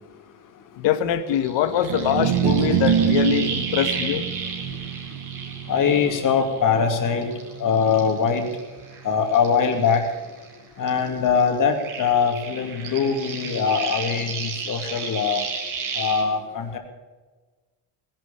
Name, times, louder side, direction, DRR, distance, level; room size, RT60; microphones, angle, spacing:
voice 1, 0.8-4.2, left 10 dB, 75° left, 10 dB, 1.8 m, -23 dB
sound 1, 1.3-6.9 7.2-10.6 10.8-16.2, right 5 dB, 45° right, 3.9 m, -33 dB
sound 2, 1.8-8.1, right 8 dB, 85° right, 1.8 m, -26 dB
voice 2, 5.7-8.5 9.0-10.1 10.8-15.4 15.9-16.8, left 6 dB, 45° left, 5 dB, 2.8 m, -22 dB
19.0 x 11.0 x 6.9 m, 1.3 s
cardioid pair, 165°, 45 cm